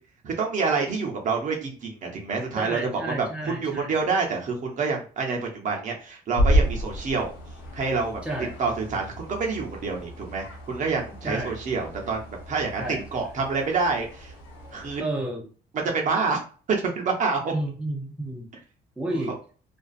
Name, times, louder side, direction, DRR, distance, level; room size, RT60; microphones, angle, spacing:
voice 1, 0.2-3.3 3.6-7.3 7.7-8.2 8.6-14.3 14.7-15.0 15.8-17.5 19.1-19.2, right 4 dB, 50° right, 0 dB, 0.8 m, -27 dB
voice 2, 2.6-3.9 8.2-8.6 11.2-11.6 12.8-13.1 15.0-15.5 17.5-18.5 19.0-19.4, right 1 dB, 5° right, 0 dB, 0.6 m, -31 dB
sound 1, 6.4-15.0, equal, 85° left, 0.7 m, -31 dB
2.5 x 2.3 x 2.3 m, 0.40 s
cardioid pair, 110°, 17 cm